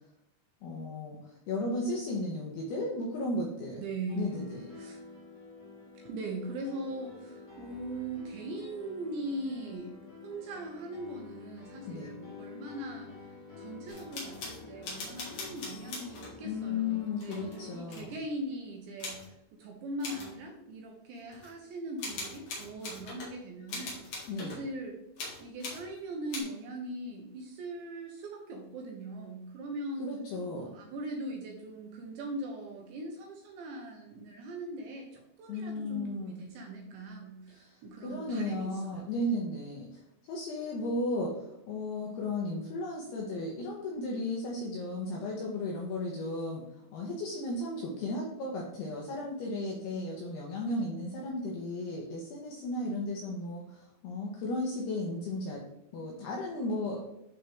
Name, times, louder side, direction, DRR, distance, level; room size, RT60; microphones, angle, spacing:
voice 1, 0.6-3.8 4.2-4.6 11.9-12.1 16.4-18.1 24.3-24.6 30.0-30.7 35.5-36.3 37.5-39.9 40.3-46.6 46.9-55.6 55.9-57.0, left 2 dB, 75° left, -2 dB, 2.4 m, -35 dB
voice 2, 3.8-4.4 4.8-5.0 5.9-9.9 10.2-13.1 13.6-19.2 19.5-24.1 24.4-25.0 25.4-30.1 30.5-39.1, right 2 dB, 75° right, 2 dB, 2.8 m, -40 dB
Piano, 4.1-17.8, left 4 dB, 25° left, 0.7 m, -49 dB
sound 1, 13.9-16.4 17.2-18.2 19.0-19.3 20.0-20.3 21.3-21.5 22.0-23.3 23.7-24.7 25.2-25.9 26.3-26.4, left 3 dB, 50° left, 2.5 m, -41 dB
11.5 x 4.2 x 3.4 m, 0.82 s
omnidirectional pair, 5.9 m